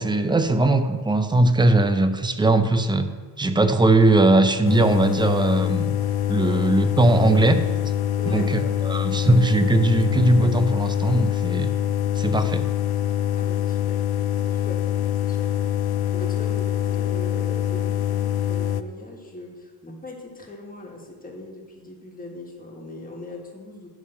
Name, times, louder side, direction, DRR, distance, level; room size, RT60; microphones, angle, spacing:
voice 1, 0.0-3.1 3.4-6.0 6.3-7.6 8.3-11.7 12.2-12.6, right 2 dB, 10° right, 9 dB, 0.4 m, -19 dB
sound 1, 4.6-18.8, left 11 dB, 55° left, 0.5 m, -24 dB
voice 2, 8.2-9.0 13.3-14.0 14.4-14.9 15.1-24.0, left 2 dB, 20° left, 0 dB, 1.6 m, -40 dB
11.0 x 3.7 x 7.5 m, 1.5 s
cardioid pair, 125°, 45 cm